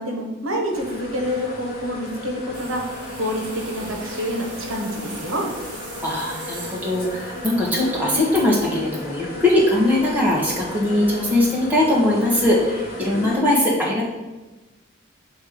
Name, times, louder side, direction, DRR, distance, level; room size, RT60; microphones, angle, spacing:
voice 1, 0.0-2.9 3.1-5.5 13.1-13.4, equal, 85° right, 1 dB, 1.1 m, -27 dB
sound 1, 0.7-13.4, left 1 dB, 45° left, 1.0 m, -35 dB
sound 2, 2.5-8.3, right 2 dB, 55° right, 1.5 m, -40 dB
voice 2, 6.0-14.0, left 1 dB, 10° right, -6 dB, 1.4 m, -20 dB
7.0 x 3.2 x 5.0 m, 1.1 s
head